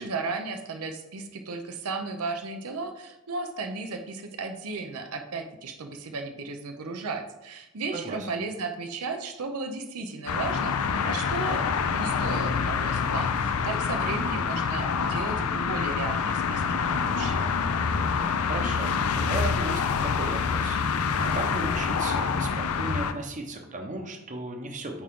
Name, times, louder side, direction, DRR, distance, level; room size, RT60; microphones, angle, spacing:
voice 1, 0.0-10.8 11.0-17.5, right 3 dB, 85° right, 6 dB, 0.7 m, -35 dB
voice 2, 7.9-8.3 18.5-25.0, right 2 dB, 35° right, 3 dB, 0.9 m, -36 dB
sound 1, 10.3-23.1, left 5 dB, 75° left, 0.5 m, -26 dB
8.8 x 3.7 x 3.7 m, 0.92 s
head